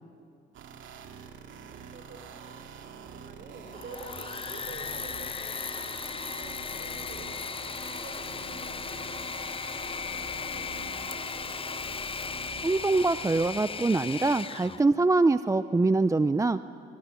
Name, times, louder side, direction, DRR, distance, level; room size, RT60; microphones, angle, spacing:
sound 1, 0.5-13.5, right 6 dB, 75° right, 2.4 m, -45 dB
voice 1, 1.7-9.6 10.1-11.8, right 4 dB, 50° right, 6 dB, 5.0 m, -49 dB
Engine / Mechanisms, 3.6-14.8, left 6 dB, 30° left, 0.6 m, -36 dB
voice 2, 12.6-16.6, right 3 dB, 15° right, 12 dB, 0.5 m, -24 dB
23.5 x 22.5 x 9.8 m, 2.7 s
cardioid pair, 90°, 20 cm